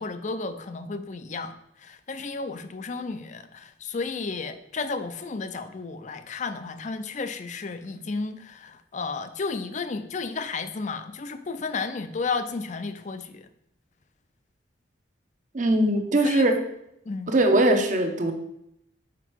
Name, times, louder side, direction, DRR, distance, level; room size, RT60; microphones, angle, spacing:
voice 1, 0.0-13.5 16.2-16.5 17.1-17.3, left 4 dB, 40° left, 10 dB, 0.4 m, -33 dB
voice 2, 15.5-16.6 17.3-18.3, right 1 dB, 45° right, 5 dB, 0.8 m, -21 dB
6.0 x 4.4 x 4.6 m, 0.78 s
head